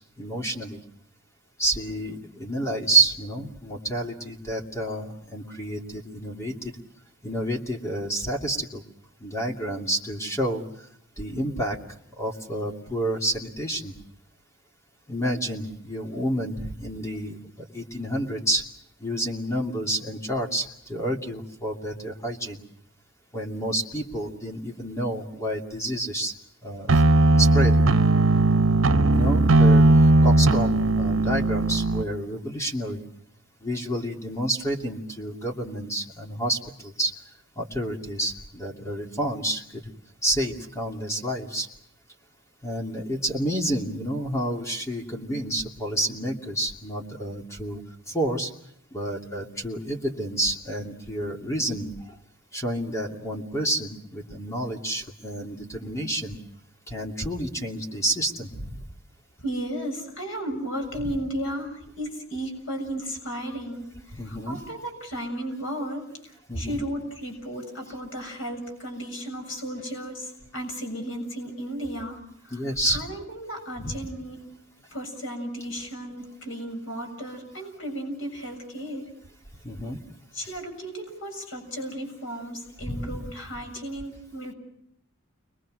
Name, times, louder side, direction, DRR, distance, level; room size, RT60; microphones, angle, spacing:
voice 1, 0.2-0.8 1.6-6.7 7.2-8.8 9.2-10.6 11.2-11.8 12.2-13.9 15.1-18.6 19.0-22.6 23.3-26.3 26.6-26.9 27.4-27.8 29.1-29.8 30.2-33.0 33.6-37.1 37.6-39.6 40.2-41.7 42.6-47.8 48.1-48.5 48.9-52.2 52.5-56.4 56.9-58.8 64.1-64.6 66.5-66.8 72.5-73.0 73.8-74.0 79.6-80.0 82.9-83.1, right 1 dB, 15° left, 0 dB, 2.7 m, -29 dB
sound 1, 26.9-32.0, right 2 dB, 90° right, 0.9 m, -18 dB
voice 2, 59.4-72.6 72.9-74.4 74.9-79.1 80.3-84.5, right 1 dB, 75° left, 3 dB, 7.2 m, -34 dB
30.0 x 23.5 x 6.3 m, 0.70 s
head